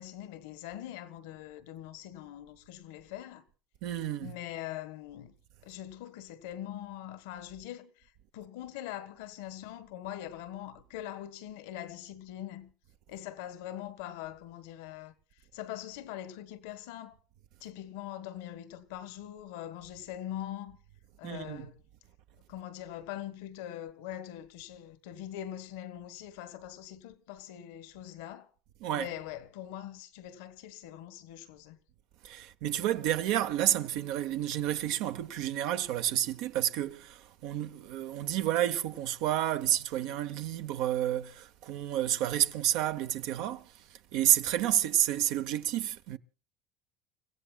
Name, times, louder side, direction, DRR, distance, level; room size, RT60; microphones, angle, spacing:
voice 1, 0.0-3.4 4.2-5.3 5.6-12.7 13.1-15.1 15.5-17.2 17.6-20.8 21.2-21.7 22.5-28.5 28.9-31.8, left 12 dB, 90° left, 1.4 m, -42 dB
voice 2, 3.8-4.3 21.2-21.7 28.8-29.1 32.2-43.7 44.1-46.2, right 12 dB, 75° right, 0.9 m, -30 dB
30.0 x 16.0 x 2.4 m
supercardioid pair, 110°, 0 cm